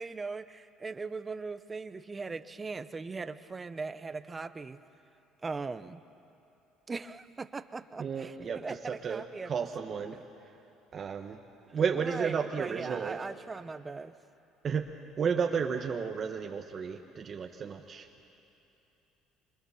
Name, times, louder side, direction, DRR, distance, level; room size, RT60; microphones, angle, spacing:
voice 1, 0.0-4.8 5.4-6.0 6.9-9.5 10.1-10.2 12.0-14.1, right 4 dB, 20° right, 12 dB, 0.7 m, -39 dB
voice 2, 8.0-10.2 10.9-11.4 11.7-13.2 14.6-14.9 15.2-18.1, right 6 dB, 35° right, 3 dB, 1.2 m, -32 dB
25.5 x 25.0 x 7.1 m, 2.9 s
cardioid pair, 125°, 0 cm